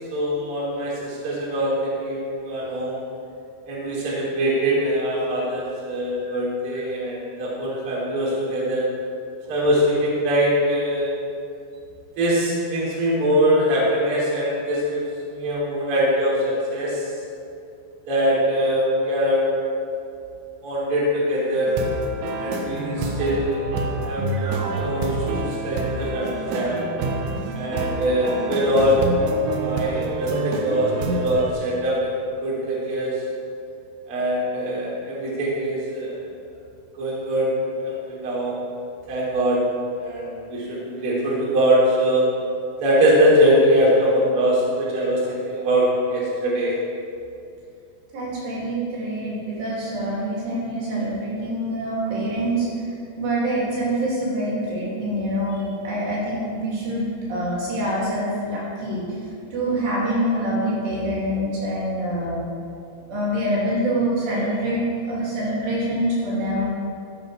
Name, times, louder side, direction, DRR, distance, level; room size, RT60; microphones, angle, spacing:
voice 1, 0.1-3.0 3.7-8.9 9.5-11.1 12.2-17.1 18.1-19.5 20.6-21.8 22.4-23.7 24.0-26.8 27.5-29.2 29.6-33.2 34.1-36.1 37.0-37.5 37.8-38.5 39.1-39.6 40.0-42.2 42.8-46.7, equal, 35° right, -7 dB, 3.0 m, -22 dB
sound 1, 21.7-31.5, right 3 dB, 85° right, 3.7 m, -27 dB
voice 2, 48.1-52.7 53.2-59.0 59.5-62.4 63.1-66.7, right 1 dB, 60° right, -6 dB, 4.6 m, -25 dB
14.5 x 8.5 x 4.8 m, 2.5 s
omnidirectional pair, 5.8 m